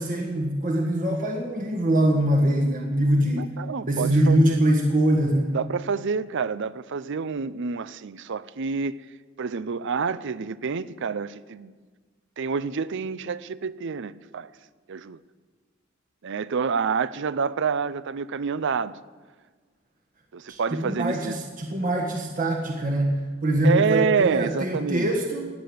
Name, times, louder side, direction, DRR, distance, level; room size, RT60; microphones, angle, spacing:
voice 1, 0.0-3.6 3.9-5.5 20.5-25.5, right 1 dB, 40° right, 1.6 m, -23 dB
voice 2, 3.4-4.6 5.5-9.0 9.4-11.7 12.4-14.5 14.9-15.2 16.2-18.9 20.3-21.4 23.6-25.1, right 5 dB, 60° right, 0.5 m, -27 dB
16.5 x 10.5 x 8.0 m
head